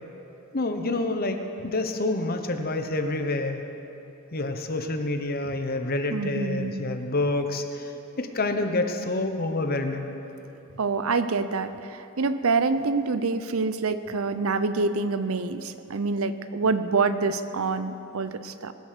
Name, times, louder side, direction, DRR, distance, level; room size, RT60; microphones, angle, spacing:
voice 1, 0.5-3.6 4.3-7.9 8.2-10.1, left 2 dB, 45° left, 6 dB, 1.0 m, -28 dB
voice 2, 6.1-6.8 10.8-18.7, right 4 dB, 70° right, 11 dB, 0.6 m, -26 dB
20.5 x 7.8 x 6.7 m, 3.0 s
head